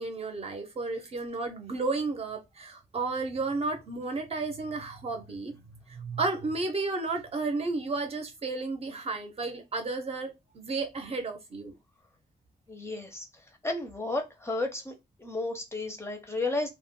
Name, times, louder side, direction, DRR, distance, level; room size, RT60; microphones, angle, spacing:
voice 1, 0.0-5.5 5.9-11.7, right 3 dB, 40° right, 0.7 m, -32 dB
voice 2, 12.7-13.3 13.6-14.9 15.2-16.7, left 2 dB, 15° left, 0.5 m, -32 dB
2.1 x 2.1 x 3.6 m
wide cardioid pair, 150°, 16 cm